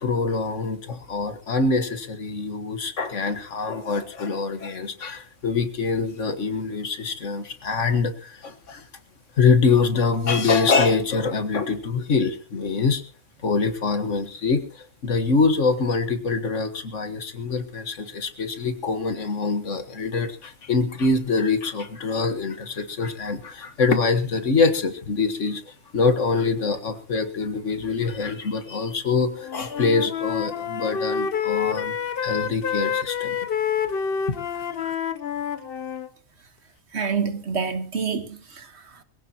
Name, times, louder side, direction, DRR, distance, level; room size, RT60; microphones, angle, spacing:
voice 1, 0.0-8.9 9.4-13.0 13.4-32.0 32.2-33.4 34.3-34.9, left 4 dB, 85° left, 1.9 m, -24 dB
Wind instrument woodwind instrument, 29.3-36.1, left 7 dB, 55° left, 1.0 m, -28 dB
voice 2, 36.9-39.0, right 5 dB, 60° right, 1.7 m, -28 dB
22.5 x 16.0 x 3.0 m
omnidirectional pair, 1.2 m